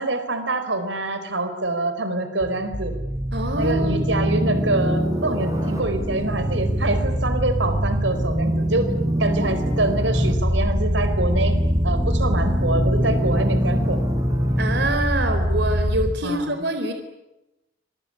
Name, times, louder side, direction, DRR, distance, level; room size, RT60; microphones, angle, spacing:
voice 1, 0.0-2.9 3.6-8.9 9.2-11.5 11.8-14.0 16.2-16.6, right 2 dB, 85° right, 9 dB, 4.5 m, -25 dB
sound 1, 2.4-16.1, equal, 20° right, 5.8 m, -23 dB
voice 2, 3.3-4.0 14.6-16.9, right 1 dB, 65° right, 6 dB, 4.1 m, -25 dB
26.5 x 22.5 x 9.9 m, 0.94 s
head